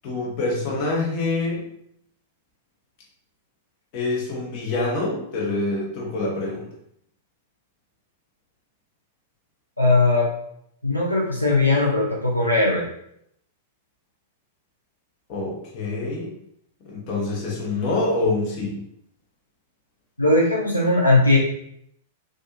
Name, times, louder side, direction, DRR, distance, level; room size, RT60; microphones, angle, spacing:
voice 1, 0.0-1.7 3.9-6.7 15.3-16.3 16.8-18.8, left 2 dB, 40° left, -3 dB, 0.9 m, -26 dB
voice 2, 9.8-10.3 10.8-12.9 20.2-21.4, left 2 dB, 85° left, -2 dB, 0.4 m, -19 dB
2.6 x 2.4 x 2.4 m, 0.73 s
figure-of-eight pair, 95°, 0 cm